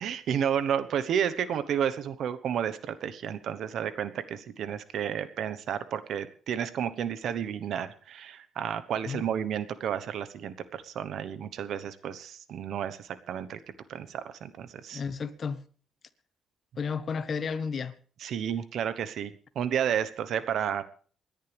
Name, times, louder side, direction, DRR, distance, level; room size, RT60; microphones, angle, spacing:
voice 1, 0.0-13.6 13.9-15.0 18.2-20.8, right 8 dB, 70° right, 1.1 m, -31 dB
voice 2, 14.9-15.6 16.8-17.9, left 5 dB, 50° left, 1.3 m, -32 dB
27.5 x 10.5 x 3.5 m
cardioid pair, 90°, 0 cm